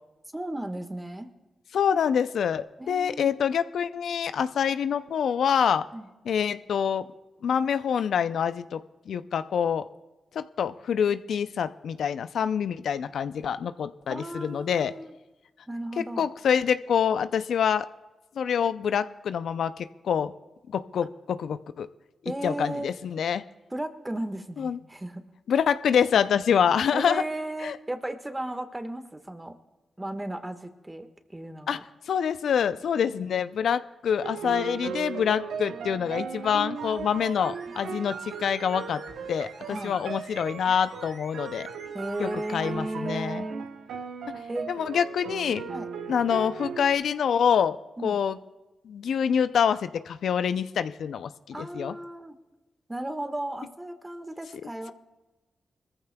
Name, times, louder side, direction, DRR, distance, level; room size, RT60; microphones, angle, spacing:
voice 1, 0.3-1.3 2.8-3.4 5.9-6.1 14.1-15.1 15.7-16.3 22.2-22.9 23.7-25.2 26.9-29.6 30.0-31.8 33.0-33.2 39.7-40.0 41.9-43.7 44.5-44.7 45.7-45.9 48.0-48.2 51.5-52.3 52.9-54.9, right 1 dB, 20° right, 8 dB, 1.5 m, -35 dB
voice 2, 1.7-5.9 6.3-7.1 7.4-8.8 9.1-9.9 10.3-14.9 16.2-17.9 18.4-20.3 20.7-21.9 22.4-23.4 24.6-24.8 25.5-27.2 27.6-27.8 31.7-31.8 32.1-39.0 39.3-41.7 42.2-43.4 44.3-44.4 44.7-45.6 46.1-47.8 48.0-48.4 48.8-51.9, left 7 dB, 75° left, 13 dB, 0.5 m, -26 dB
sound 1, 34.2-46.9, right 6 dB, 80° right, 0.8 m, -37 dB
sound 2, 36.7-42.8 43.1-43.2, right 3 dB, 65° right, 1.8 m, -48 dB
21.5 x 14.5 x 2.3 m, 1.1 s
supercardioid pair, 40°, 0 cm